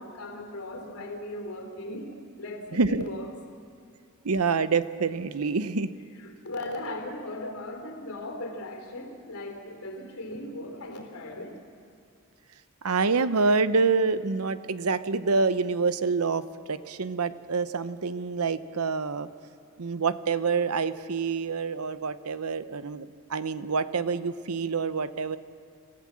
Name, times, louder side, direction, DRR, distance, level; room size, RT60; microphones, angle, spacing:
voice 1, 0.0-3.3 6.2-11.6, left 1 dB, 80° left, 4 dB, 3.5 m, -38 dB
voice 2, 2.7-3.0 4.2-5.9 12.8-16.4 16.7-19.3 19.8-25.4, right 4 dB, 85° right, 13 dB, 0.8 m, -27 dB
27.5 x 15.5 x 7.5 m, 2.4 s
head